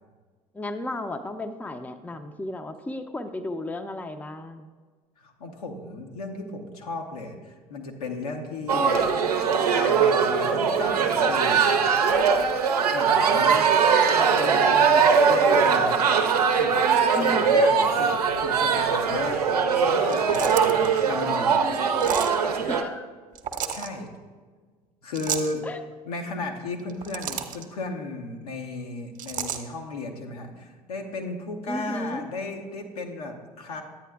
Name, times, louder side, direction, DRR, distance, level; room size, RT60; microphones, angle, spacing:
voice 1, 0.5-4.7 17.1-17.6 22.7-23.1 25.6-25.9 31.7-32.2, left 1 dB, 10° left, 8 dB, 0.5 m, -34 dB
voice 2, 5.2-9.1 9.7-11.7 12.9-13.8 14.1-16.0 16.5-16.8 17.1-21.6 23.7-24.1 25.0-25.7 26.0-33.8, left 2 dB, 80° left, 2 dB, 1.0 m, -35 dB
sound 1, 8.7-22.8, right 6 dB, 85° right, 0.5 m, -21 dB
sound 2, 20.0-20.9 22.0-22.4 23.4-23.9 25.1-25.5 26.8-27.6 29.2-29.6, right 8 dB, 45° right, 0.8 m, -31 dB
10.0 x 8.9 x 2.3 m, 1.5 s
figure-of-eight pair, 60°, 19 cm